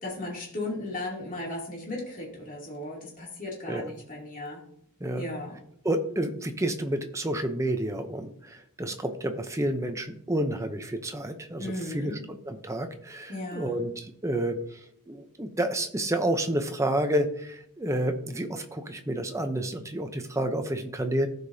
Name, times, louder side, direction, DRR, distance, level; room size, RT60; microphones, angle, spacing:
voice 1, 0.0-4.6 5.2-5.6 11.6-12.2 13.3-13.8, left 1 dB, 40° left, -3 dB, 2.8 m, -36 dB
voice 2, 5.8-14.8 15.1-21.3, right 1 dB, 15° right, 7 dB, 0.7 m, -30 dB
15.0 x 5.1 x 2.8 m, 0.69 s
head